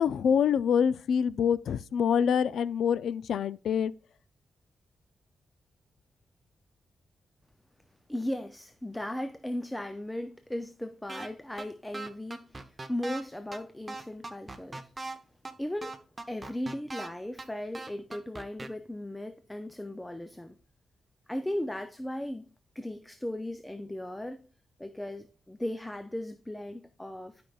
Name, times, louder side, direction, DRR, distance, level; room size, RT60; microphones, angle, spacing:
voice 1, 0.0-3.9, left 7 dB, 80° left, 0.3 m, -26 dB
voice 2, 8.1-14.9 15.6-16.0 16.3-20.6 21.3-22.5 22.8-24.4 24.8-27.4, left 1 dB, 5° left, 0.4 m, -37 dB
sound 1, 11.1-11.3 11.6-11.7 11.9-13.2 13.5-13.6 13.9-15.2 15.5-15.6 15.8-17.1 17.4-17.5 17.7-18.7, right 3 dB, 20° right, 0.7 m, -39 dB
12.0 x 5.2 x 2.3 m
wide cardioid pair, 140°, 0 cm